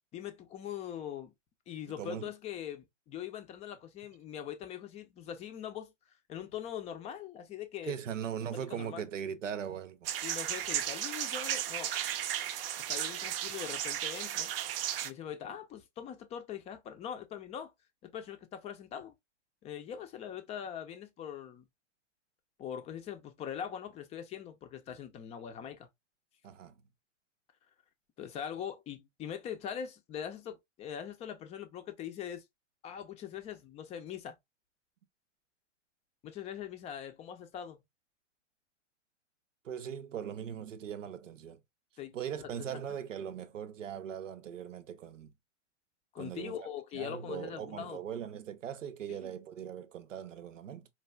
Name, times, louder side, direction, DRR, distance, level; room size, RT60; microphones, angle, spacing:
voice 1, 0.1-1.3 1.7-5.9 6.3-7.9 8.7-9.1 10.2-11.9 12.9-14.5 15.0-17.7 18.0-19.1 19.6-21.7 22.6-25.9 28.2-32.4 32.8-34.3 36.2-37.8 42.0-42.5 46.1-48.0 49.1-49.3, left 9 dB, 20° left, 0.5 m, -42 dB
voice 2, 2.0-2.3 7.8-10.1 26.4-26.7 39.6-41.6 42.1-45.3 46.2-46.6 46.9-50.9, right 8 dB, 90° right, 0.7 m, -40 dB
sound 1, 10.0-15.1, right 11 dB, 50° right, 0.6 m, -35 dB
4.4 x 2.4 x 2.3 m
hypercardioid pair, 130°, 37 cm